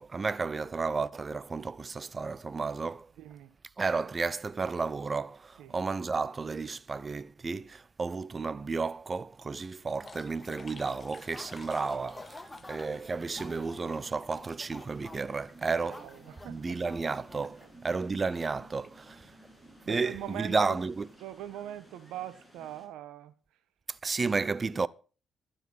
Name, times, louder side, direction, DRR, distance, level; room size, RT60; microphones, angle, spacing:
voice 1, 0.0-3.1 3.8-16.1 16.5-19.3 19.9-21.1 24.0-24.9, right 4 dB, 35° right, 0.8 m, -32 dB
voice 2, 3.2-3.6 5.6-5.8 15.7-16.8 17.6-17.7 19.8-20.8 21.2-23.3, right 12 dB, 80° right, 1.3 m, -42 dB
sound 1, 10.0-13.1 13.4-14.6 15.2-15.3 15.5-15.8 16.1-16.2 16.9-17.1 17.4-17.7 18.3-18.4 18.8-18.9, left 3 dB, 35° left, 1.2 m, -51 dB
sound 2, 10.7-22.9, right 1 dB, 15° right, 7.7 m, -56 dB
sound 3, 11.0-17.8, left 2 dB, 20° left, 2.1 m, -51 dB
12.5 x 10.0 x 5.6 m
supercardioid pair, 55°, 0 cm